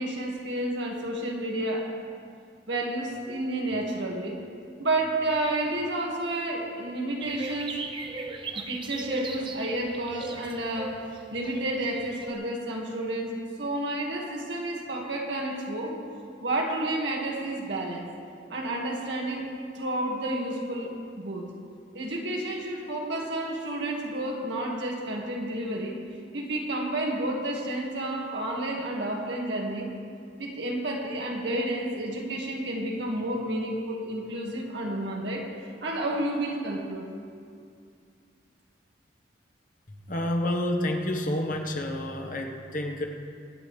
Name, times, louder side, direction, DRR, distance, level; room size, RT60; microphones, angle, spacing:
voice 1, 0.0-1.9 2.7-4.4 4.8-7.8 8.5-11.0 11.3-16.0 16.4-18.1 18.5-19.5 19.8-21.5 21.9-26.0 26.3-29.9 30.4-35.5 35.8-37.1, right 1 dB, 80° right, 0 dB, 1.9 m, -30 dB
sound 1, 7.2-12.3, right 3 dB, 25° right, 0.7 m, -38 dB
voice 2, 39.9-43.1, left 1 dB, 50° left, 2 dB, 1.3 m, -29 dB
25.0 x 9.1 x 3.3 m, 2.4 s
head